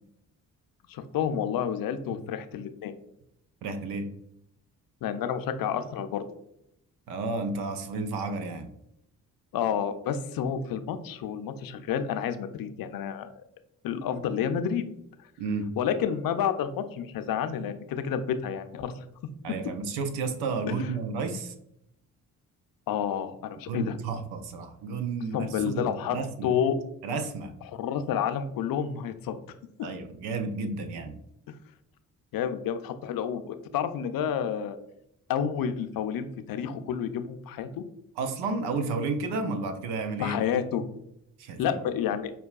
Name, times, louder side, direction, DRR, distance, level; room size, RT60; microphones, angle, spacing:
voice 1, 0.9-2.9 5.0-6.2 9.5-13.3 13.8-14.8 15.8-19.1 22.9-24.0 25.3-26.8 27.7-29.4 32.3-34.8 35.3-37.8 40.2-40.8 41.6-42.3, left 8 dB, 60° left, 10 dB, 0.5 m, -30 dB
voice 2, 3.6-4.1 7.1-8.7 15.4-15.7 19.4-21.5 23.7-26.5 27.0-27.5 29.8-31.2 38.2-40.4 41.4-41.8, right 3 dB, 90° right, 8 dB, 0.5 m, -32 dB
5.2 x 2.2 x 2.3 m, 0.78 s
supercardioid pair, 45°, 38 cm